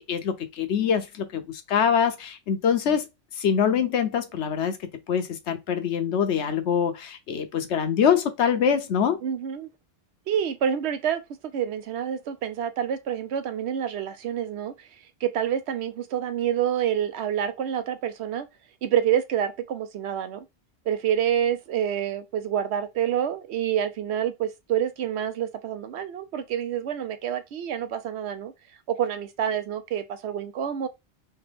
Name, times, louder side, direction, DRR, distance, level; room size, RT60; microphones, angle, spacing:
voice 1, 0.0-3.1 3.4-4.8 5.1-9.2, left 7 dB, 80° left, 1.0 m, -24 dB
voice 2, 9.2-9.7 10.3-11.2 11.5-14.7 15.2-18.5 18.8-20.4 20.9-28.5 28.9-30.9, right 9 dB, 75° right, 0.9 m, -27 dB
3.3 x 3.0 x 3.3 m
omnidirectional pair, 1.1 m